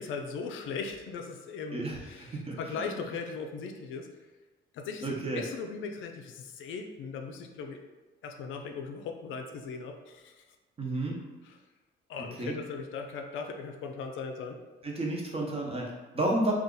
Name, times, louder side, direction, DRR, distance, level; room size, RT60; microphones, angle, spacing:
voice 1, 0.0-4.1 4.7-7.8 8.2-10.4 11.5-11.6 12.1-14.6, left 5 dB, 80° left, 4 dB, 0.4 m, -38 dB
voice 2, 1.7-3.0 5.0-5.4 10.8-11.2 12.4-12.6 14.8-16.5, right 2 dB, 30° right, -2 dB, 0.8 m, -32 dB
2.7 x 2.4 x 3.7 m, 1.2 s
cardioid pair, 90°, 20 cm